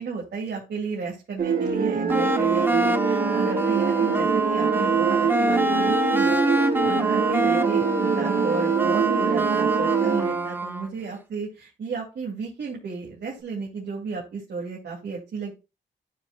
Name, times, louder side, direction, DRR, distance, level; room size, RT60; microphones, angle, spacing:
voice 1, 0.0-15.5, right 4 dB, 65° right, -2 dB, 2.5 m, -33 dB
sound 1, 1.4-10.6, right 5 dB, 50° right, 1.3 m, -24 dB
sound 2, 2.1-10.9, right 2 dB, 10° right, 0.8 m, -25 dB
13.5 x 4.9 x 2.3 m, 0.28 s
cardioid pair, 95°, 19 cm